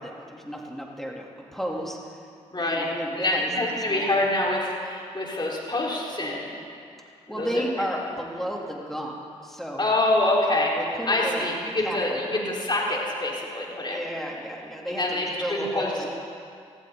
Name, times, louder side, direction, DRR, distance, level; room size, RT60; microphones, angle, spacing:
voice 1, 0.0-2.3 2.6-4.1 7.3-9.8 10.7-11.5 11.8-12.4 13.9-16.1, equal, ahead, -2 dB, 3.2 m, -33 dB
voice 2, 2.5-2.9 3.2-6.5 7.3-7.7 9.8-10.8 11.1-14.0 14.9-16.1, left 2 dB, 35° left, -3 dB, 4.6 m, -26 dB
20.0 x 14.5 x 4.0 m, 2.4 s
supercardioid pair, 45°, 14 cm